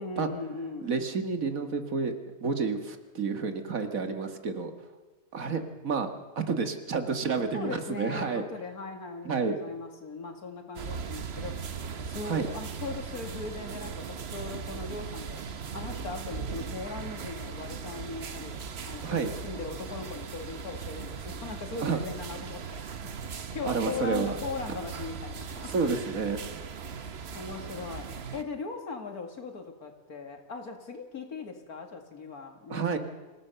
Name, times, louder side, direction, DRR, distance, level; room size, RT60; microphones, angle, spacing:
voice 1, 0.0-1.0 7.5-22.9 23.3-25.9 27.3-33.0, left 4 dB, 80° left, 5 dB, 2.7 m, -39 dB
voice 2, 0.8-2.1 2.4-4.7 5.3-6.1 6.4-8.5 9.3-9.6 12.3-12.5 19.0-19.3 21.8-22.0 23.6-24.4 25.6-26.4 32.7-33.0, right 5 dB, 65° right, 7 dB, 2.0 m, -30 dB
sound 1, 10.8-28.4, right 6 dB, 50° right, 1.1 m, -39 dB
26.0 x 16.5 x 6.8 m, 1.2 s
omnidirectional pair, 1.6 m